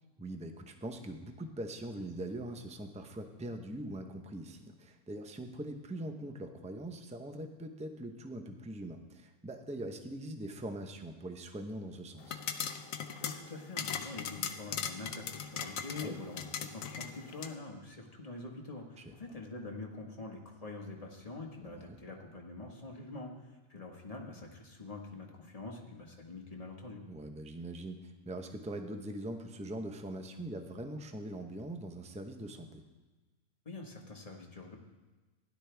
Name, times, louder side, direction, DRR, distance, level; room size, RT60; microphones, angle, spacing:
voice 1, 0.2-12.4 16.0-16.2 19.0-19.1 21.6-22.0 27.1-32.8, right 1 dB, 5° right, 5 dB, 0.5 m, -42 dB
sound 1, 12.2-17.5, left 7 dB, 65° left, 1.1 m, -39 dB
voice 2, 13.2-27.0 33.6-34.8, left 3 dB, 25° left, 0 dB, 1.5 m, -45 dB
16.0 x 11.5 x 3.4 m, 1.2 s
omnidirectional pair, 1.6 m